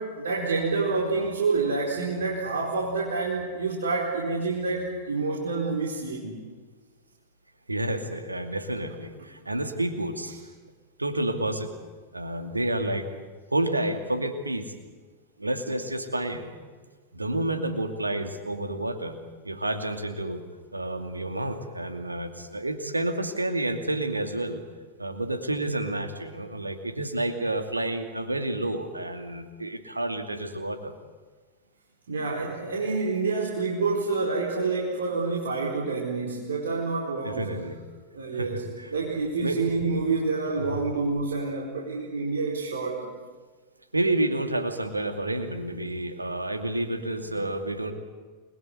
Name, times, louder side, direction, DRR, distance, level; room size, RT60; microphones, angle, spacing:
voice 1, 0.0-6.4 32.1-37.6 38.1-38.6 38.9-43.1 47.3-47.4, right 4 dB, 65° right, -3 dB, 4.6 m, -28 dB
voice 2, 7.7-10.3 11.0-11.7 12.1-13.1 13.5-14.7 15.4-16.5 17.1-19.2 19.4-20.4 20.7-24.6 25.0-30.9 37.2-37.8 38.3-38.9 39.4-39.6 40.6-40.7 43.9-47.9, right 1 dB, 85° right, 6 dB, 2.6 m, -29 dB
29.0 x 21.5 x 8.4 m, 1.4 s
figure-of-eight pair, 90°, 0 cm